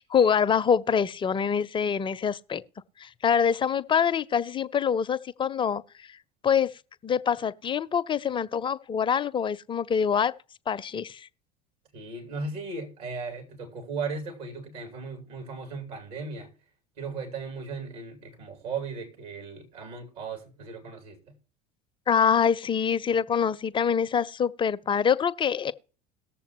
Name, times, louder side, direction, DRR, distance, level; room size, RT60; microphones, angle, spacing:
voice 1, 0.0-2.6 3.0-5.8 6.4-6.7 7.0-10.3 10.7-11.3 22.1-25.7, left 7 dB, 25° left, 0.5 m, -25 dB
voice 2, 11.9-16.5 17.0-21.2, right 4 dB, 70° right, 2.7 m, -37 dB
19.0 x 6.9 x 3.0 m
figure-of-eight pair, 70°, 21 cm